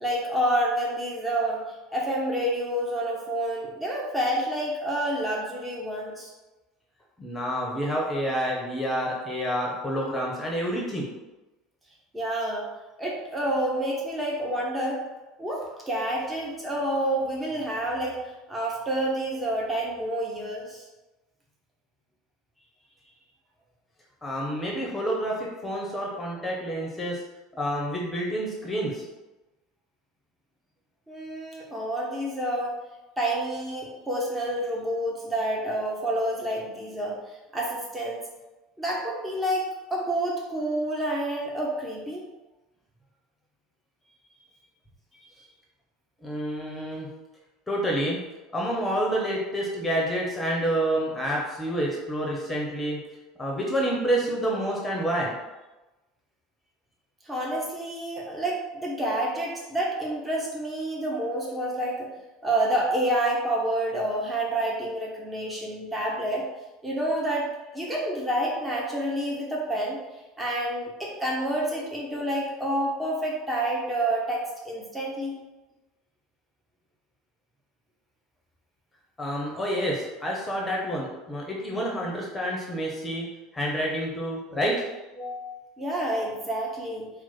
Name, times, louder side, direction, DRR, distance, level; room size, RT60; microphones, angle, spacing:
voice 1, 0.0-6.3 12.1-12.7 13.0-15.1 15.4-20.9 31.1-32.7 33.2-38.2 38.8-42.2 57.2-62.1 62.4-66.5 66.8-70.0 70.4-75.4 85.8-87.1, right 1 dB, 15° right, -3 dB, 0.8 m, -28 dB
voice 2, 7.2-11.1 24.2-27.2 27.6-29.0 45.3-45.4 46.2-47.1 47.7-48.2 48.5-53.0 53.4-55.3 74.3-74.4 79.2-83.3 83.5-84.7 85.2-85.6, equal, 15° left, -2 dB, 0.8 m, -28 dB
4.4 x 2.1 x 4.3 m, 1.1 s
figure-of-eight pair, 70°, 0 cm